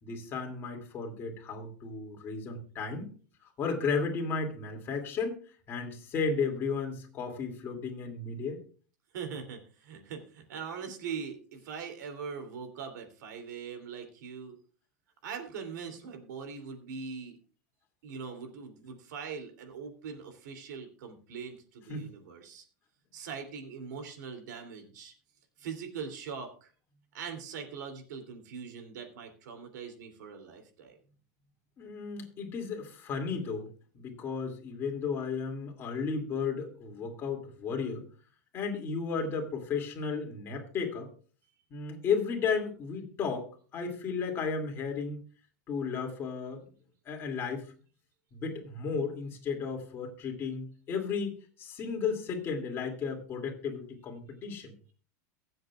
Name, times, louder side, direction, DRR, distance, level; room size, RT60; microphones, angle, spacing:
voice 1, 0.0-3.1 3.6-5.4 5.7-8.6 21.9-22.1 31.8-33.7 33.9-38.0 38.5-41.1 41.7-45.2 45.7-46.7 47.1-47.7 48.3-54.7, left 5 dB, 25° left, 1 dB, 2.5 m, -34 dB
voice 2, 9.1-14.6 15.2-17.4 18.0-22.6 23.1-25.1 25.6-26.7 27.1-31.0, right 6 dB, 90° right, 6 dB, 3.0 m, -41 dB
23.0 x 7.8 x 2.4 m, 0.40 s
supercardioid pair, 165°, 9 cm